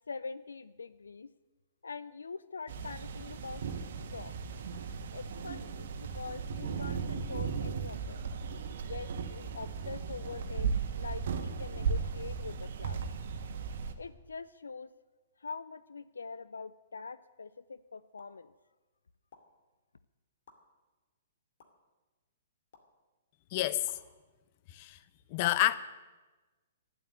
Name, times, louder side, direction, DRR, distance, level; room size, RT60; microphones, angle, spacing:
voice 1, 0.1-1.3 1.8-4.3 5.1-8.2 8.8-10.7 11.0-13.0 14.0-14.9 15.4-18.5, left 4 dB, 85° left, 0.5 m, -44 dB
sound 1, 2.7-13.9, right 6 dB, 60° right, 1.5 m, -36 dB
sound 2, 18.2-18.4 19.3-19.4 20.5-20.6 21.6-21.7 22.7-22.9 23.9-24.0, left 5 dB, 60° left, 2.6 m, -57 dB
voice 2, 23.5-24.0 24.7-25.0 25.3-25.8, left 15 dB, 45° left, 0.8 m, -28 dB
12.5 x 11.0 x 9.1 m
hypercardioid pair, 120°, 0 cm